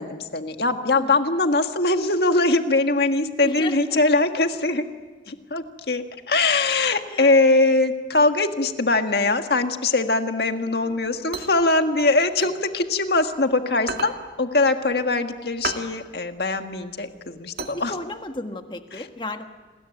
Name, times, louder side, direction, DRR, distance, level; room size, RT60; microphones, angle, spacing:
voice 1, 0.0-4.9 5.3-14.1 14.4-17.9 18.9-19.0, left 2 dB, 65° left, 6 dB, 1.8 m, -22 dB
voice 2, 3.4-4.0 7.0-7.3 10.7-11.3 17.7-19.4, left 2 dB, 25° left, 6 dB, 1.5 m, -34 dB
sound 1, 10.9-13.4 13.7-18.4, right 4 dB, 55° right, 2.3 m, -35 dB
28.5 x 21.0 x 9.1 m, 1.4 s
head